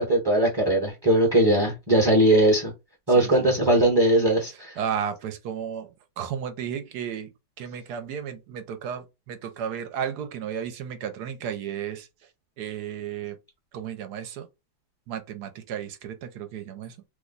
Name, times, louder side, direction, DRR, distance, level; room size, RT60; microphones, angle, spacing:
voice 1, 0.0-2.7 3.1-4.8, right 1 dB, 20° right, 0.7 m, -20 dB
voice 2, 3.1-3.9 4.8-5.9 6.2-7.3 7.6-12.1 12.6-13.4 13.7-14.5 15.1-16.9, right 8 dB, 70° right, 1.1 m, -33 dB
3.0 x 2.1 x 3.8 m
omnidirectional pair, 2.0 m